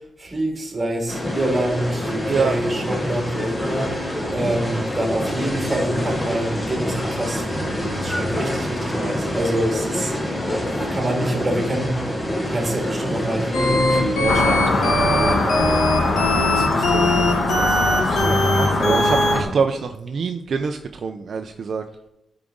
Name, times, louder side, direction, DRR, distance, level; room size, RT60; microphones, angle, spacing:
voice 1, 0.2-10.4 10.9-12.1 12.4-19.5, right 1 dB, 20° right, 1 dB, 2.2 m, -27 dB
sound 1, 1.1-16.5, left 1 dB, 15° left, 1.1 m, -27 dB
sound 2, 13.5-19.3, left 1 dB, 80° left, 2.6 m, -20 dB
sound 3, 14.3-19.4, left 3 dB, 50° left, 1.1 m, -22 dB
voice 2, 18.0-21.8, right 5 dB, 55° right, 6 dB, 0.5 m, -25 dB
12.5 x 4.9 x 3.7 m, 0.86 s
wide cardioid pair, 135°, 0 cm